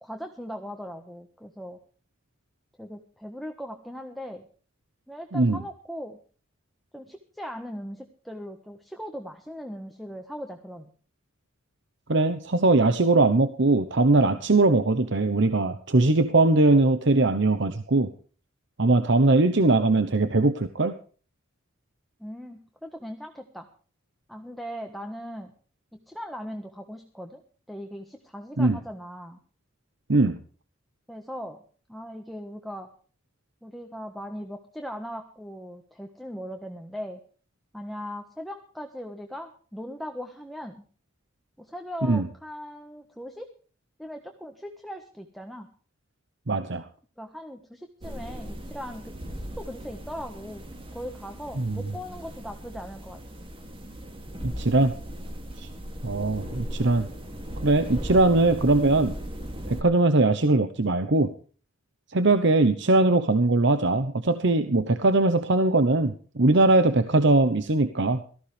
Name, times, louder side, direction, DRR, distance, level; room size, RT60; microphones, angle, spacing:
voice 1, 0.0-1.8 2.8-4.5 5.1-6.2 6.9-10.9 22.2-23.7 24.3-25.5 25.9-27.4 27.7-29.4 31.1-31.6 31.9-32.9 33.6-37.2 37.7-40.8 41.6-43.5 44.0-45.7 47.2-49.1 49.5-50.7 50.9-53.2, equal, ahead, 3 dB, 1.4 m, -39 dB
voice 2, 12.1-18.1 18.8-20.9 28.6-28.8 30.1-30.4 42.0-42.2 46.5-46.9 51.6-51.8 54.4-54.9 55.6-55.7 56.0-57.1 57.6-59.1 59.7-61.3 62.1-68.2, right 2 dB, 65° right, 10 dB, 1.0 m, -21 dB
sound 1, 48.0-59.8, equal, 30° right, 2.6 m, -38 dB
18.5 x 14.5 x 3.4 m, 0.41 s
head